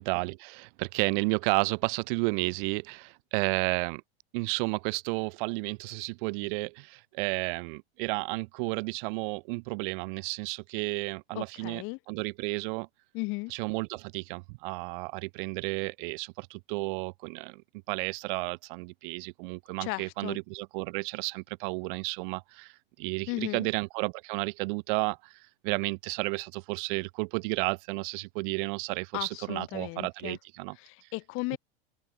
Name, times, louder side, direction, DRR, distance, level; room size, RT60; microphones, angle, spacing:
voice 1, 0.0-4.0 4.3-12.9 13.5-17.6 17.9-25.3 25.6-30.8, right 29 dB, 55° right, 0.8 m, -32 dB
voice 2, 11.3-12.0 13.1-13.5 19.8-20.4 23.3-23.7 29.1-30.4 30.8-31.6, left 25 dB, 45° left, 0.7 m, -35 dB
hypercardioid pair, 105°, 31 cm